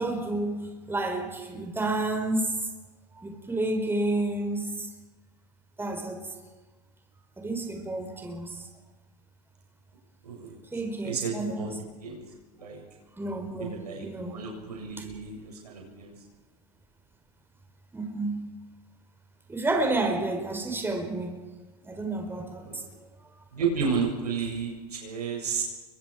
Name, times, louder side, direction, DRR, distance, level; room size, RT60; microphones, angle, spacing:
voice 1, 0.0-2.6 3.1-4.9 5.8-6.3 7.4-8.7 10.7-11.7 12.6-12.7 13.2-14.4 17.9-18.5 19.5-21.4 21.8-23.1, right 2 dB, 10° right, 3 dB, 4.8 m, -30 dB
voice 2, 10.2-10.6 11.0-11.7 12.0-12.2 12.6-12.8 13.6-16.1 22.7-22.8 23.5-25.6, right 5 dB, 75° right, 1 dB, 7.2 m, -32 dB
28.5 x 24.0 x 5.1 m, 1.2 s
figure-of-eight pair, 85°, 20 cm